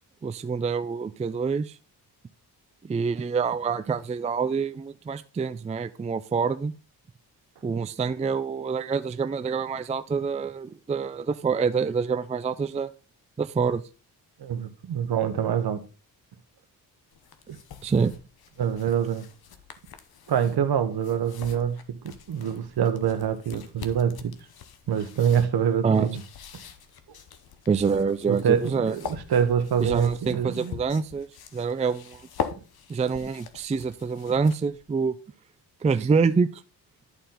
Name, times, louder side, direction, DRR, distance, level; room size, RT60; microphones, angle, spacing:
voice 1, 0.2-1.7 2.8-6.7 7.6-12.9 13.4-13.8 17.8-18.1 25.8-26.1 27.7-29.0 29.8-31.3 31.5-32.3 32.9-35.1 35.8-36.6, right 5 dB, 20° right, 0.4 m, -26 dB
voice 2, 14.4-15.8 17.5-17.6 18.6-19.3 20.3-21.8 22.0-24.3 24.9-26.2 28.3-30.7, right 8 dB, 65° right, 1.1 m, -25 dB
sound 1, 17.1-34.8, left 7 dB, 65° left, 1.0 m, -42 dB
11.0 x 4.3 x 3.8 m
cardioid pair, 85°, 41 cm